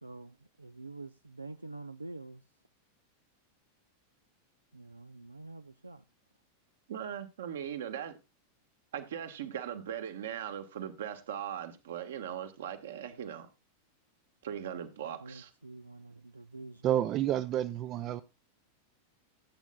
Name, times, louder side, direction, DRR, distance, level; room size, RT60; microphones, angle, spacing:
voice 1, 0.0-2.4 4.7-6.0 15.2-16.9, right 2 dB, 85° right, 0.4 m, -47 dB
voice 2, 6.9-8.2 8.9-13.5 14.4-15.5, right 9 dB, 60° right, 1.4 m, -39 dB
voice 3, 16.8-18.2, right 11 dB, 35° right, 0.5 m, -29 dB
16.0 x 8.4 x 2.3 m
figure-of-eight pair, 90°, 0 cm